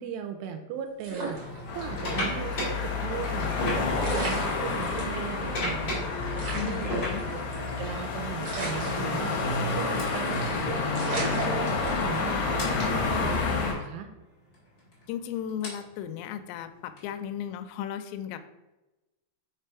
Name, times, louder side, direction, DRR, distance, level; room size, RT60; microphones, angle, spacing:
voice 1, 0.0-6.0 6.5-7.4 7.8-14.1, right 8 dB, 80° right, 6 dB, 2.5 m, -38 dB
sound 1, 1.0-2.2 2.5-2.6 3.6-3.7 4.0-5.2 5.6-5.7 5.9-6.0 6.4-7.9 8.4-9.7 10.0-10.3 10.6-10.7 10.9-12.3 12.8-13.1, right 3 dB, 65° right, 1.1 m, -36 dB
sound 2, 1.2-8.0 8.8-9.0 10.0-10.1 11.4-11.5 11.7-11.9 12.6-12.7 14.5-17.6, left 1 dB, 35° left, 1.4 m, -35 dB
sound 3, 1.7-13.7, left 4 dB, 65° left, 2.5 m, -29 dB
voice 2, 6.5-7.2 15.1-18.4, left 9 dB, 85° left, 9 dB, 2.8 m, -35 dB
6.5 x 3.3 x 4.6 m, 1.0 s
omnidirectional pair, 5.1 m